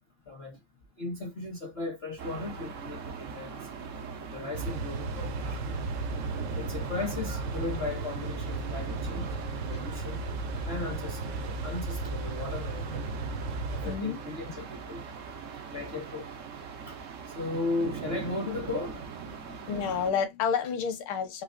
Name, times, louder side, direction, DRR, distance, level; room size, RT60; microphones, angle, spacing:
voice 1, 0.3-0.6 1.0-3.7 4.3-5.6 6.5-9.3 9.7-10.2 10.6-13.1 13.7-15.0 15.7-16.3 16.9-17.0 17.3-19.0, left 3 dB, 50° left, 0.7 m, -36 dB
sound 1, 2.2-20.1, right 6 dB, 85° right, 0.6 m, -41 dB
sound 2, 4.5-14.0, right 3 dB, 70° right, 1.2 m, -35 dB
voice 2, 9.4-9.8 11.3-11.4 13.8-14.2 19.4-21.4, left 6 dB, 75° left, 1.7 m, -30 dB
4.0 x 2.8 x 2.5 m
omnidirectional pair, 2.3 m